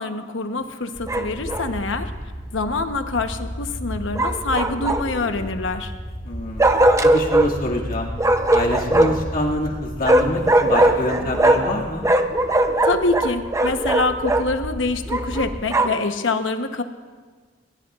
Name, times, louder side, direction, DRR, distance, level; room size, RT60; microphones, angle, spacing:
voice 1, 0.0-2.1 2.5-5.9 12.8-16.8, left 3 dB, 80° left, 7 dB, 1.0 m, -25 dB
sound 1, 0.9-15.6, equal, 25° left, 4.0 m, -34 dB
Bark, 1.1-1.7 4.2-5.3 6.6-7.5 8.2-9.3 10.0-11.8 12.0-14.5 15.1-16.1, right 1 dB, 15° right, 0.6 m, -19 dB
voice 2, 6.2-6.6 7.0-8.1 8.5-12.1, left 1 dB, 50° left, -2 dB, 2.2 m, -26 dB
22.5 x 19.0 x 2.5 m, 1.4 s
head